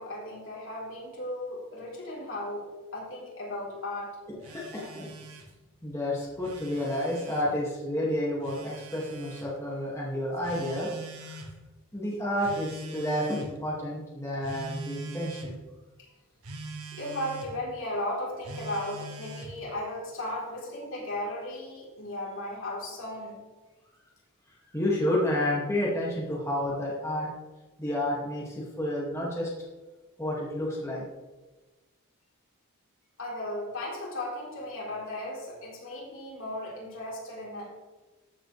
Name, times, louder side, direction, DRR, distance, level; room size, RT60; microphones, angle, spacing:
voice 1, 0.0-4.2 16.0-16.1 16.9-23.4 33.2-37.8, left 1 dB, 60° left, -3 dB, 3.7 m, -36 dB
voice 2, 4.3-5.1 5.8-10.9 11.2-11.4 11.9-15.6 24.7-27.3 27.8-29.5 30.2-31.0, left 1 dB, 15° left, -5 dB, 2.0 m, -30 dB
Telephone, 4.4-5.5 6.3-7.5 8.4-9.5 10.4-11.5 12.4-13.6 14.4-15.5 16.4-17.5 18.4-19.6, right 2 dB, 85° right, 1.5 m, -42 dB
14.0 x 7.7 x 3.3 m, 1.2 s
head